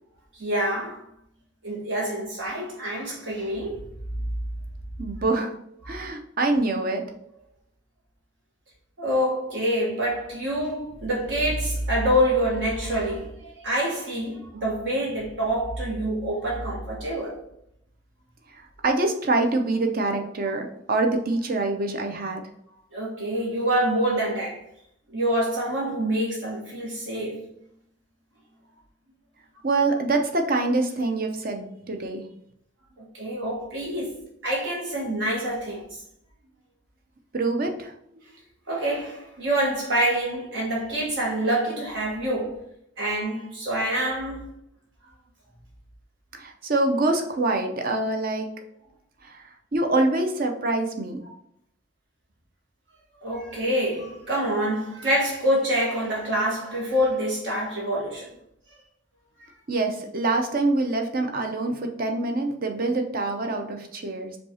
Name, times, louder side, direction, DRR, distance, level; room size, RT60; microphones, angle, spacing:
voice 1, 0.4-1.0 1.6-3.8 9.0-17.3 22.9-24.6 25.1-27.3 33.0-36.0 38.7-42.5 43.0-44.5 53.2-58.3, right 1 dB, 70° right, 1.2 m, -26 dB
voice 2, 5.0-5.5 5.9-7.0 18.8-22.4 29.6-32.3 37.3-37.9 46.3-48.5 49.2-49.4 49.7-51.2 59.7-64.4, right 2 dB, 50° right, 0.7 m, -25 dB
5.2 x 2.4 x 4.3 m
head